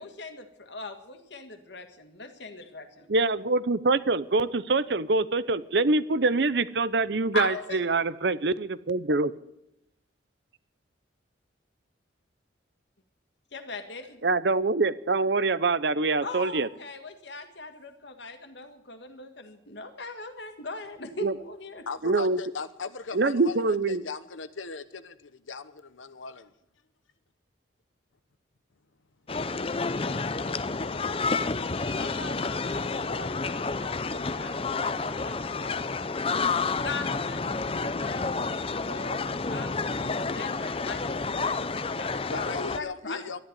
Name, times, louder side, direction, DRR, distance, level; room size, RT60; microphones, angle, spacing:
voice 1, 0.0-3.1 7.3-7.8 13.5-14.3 16.2-21.9 31.9-35.9 36.8-43.2, left 3 dB, 65° left, 7 dB, 1.8 m, -40 dB
voice 2, 3.1-9.3 14.2-16.7 21.2-21.3 22.0-22.4 23.1-24.0, right 3 dB, 60° right, 16 dB, 0.7 m, -25 dB
voice 3, 21.9-26.5 42.3-43.4, left 4 dB, 85° left, 13 dB, 0.9 m, -38 dB
sound 1, 29.3-42.8, left 4 dB, 30° left, 0.6 m, -30 dB
12.5 x 11.0 x 9.9 m, 0.84 s
head